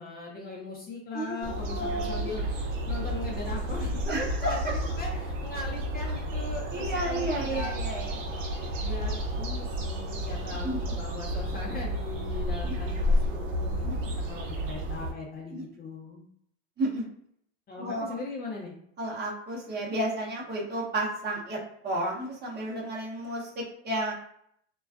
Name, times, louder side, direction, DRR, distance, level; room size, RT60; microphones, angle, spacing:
voice 1, 0.0-7.7 8.4-16.2 17.7-18.8, left 3 dB, 25° left, -2 dB, 0.6 m, -39 dB
voice 2, 1.1-2.3 4.1-4.6 6.7-8.1 10.6-10.8 12.6-12.7 13.8-14.0 15.5-15.6 16.8-17.0 17.8-18.2 19.0-24.1, right 1 dB, 25° right, -3 dB, 0.7 m, -32 dB
sound 1, 1.4-15.1, equal, 85° right, 0.7 m, -31 dB
2.3 x 2.2 x 2.3 m, 0.70 s
hypercardioid pair, 95°, 37 cm